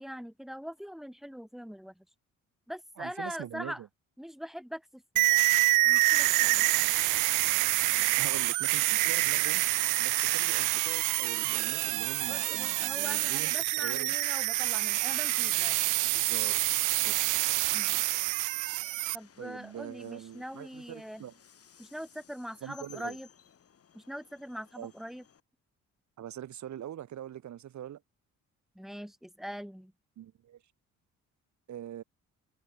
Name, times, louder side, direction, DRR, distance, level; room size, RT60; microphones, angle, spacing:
voice 1, 0.0-2.1 2.7-3.8 4.2-5.3 5.8-6.7 12.3-15.8 17.7-18.0 19.1-21.2 21.8-23.3 23.9-25.2 28.8-29.9, equal, ahead, 2.1 m, -42 dB
voice 2, 3.0-3.9 8.2-9.6 10.0-14.1 16.1-16.5 16.9-17.1 19.4-21.3 22.6-23.2 24.8-24.9 26.2-28.0 30.2-30.6 31.7-32.0, right 11 dB, 70° right, 4.0 m, -43 dB
sound 1, 5.2-19.2, right 20 dB, 90° right, 0.6 m, -27 dB
Train, 15.0-25.4, left 7 dB, 50° left, 5.4 m, -56 dB
cardioid pair, 90°, 30 cm